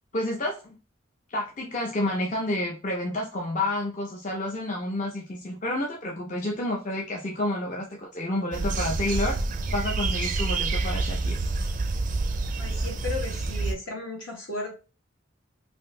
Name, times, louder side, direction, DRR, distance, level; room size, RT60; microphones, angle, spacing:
voice 1, 0.1-0.8 1.3-9.4 9.7-11.4, left 1 dB, 40° left, 0 dB, 0.5 m, -29 dB
sound 1, 8.5-13.7, right 3 dB, 40° right, 0.4 m, -28 dB
voice 2, 12.6-14.7, left 2 dB, 75° left, -1 dB, 1.3 m, -35 dB
2.8 x 2.6 x 3.0 m, 0.33 s
head